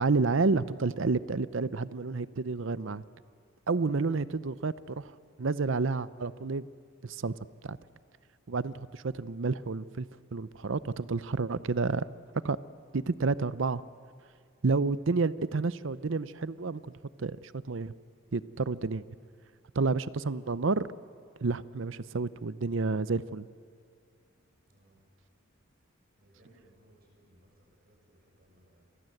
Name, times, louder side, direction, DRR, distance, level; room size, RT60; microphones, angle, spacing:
voice 1, 0.0-3.0 3.7-5.1 5.4-6.7 7.0-7.4 7.6-7.8 8.5-10.1 10.3-12.1 12.4-12.6 12.9-13.8 14.6-16.8 17.2-17.9 18.3-19.0 19.7-20.8 21.4-23.5, right 4 dB, 65° right, 16 dB, 0.6 m, -30 dB
voice 2, 24.7-25.0 26.2-28.8, right 1 dB, 45° right, 1 dB, 6.5 m, -63 dB
28.0 x 23.0 x 7.9 m, 2.2 s
head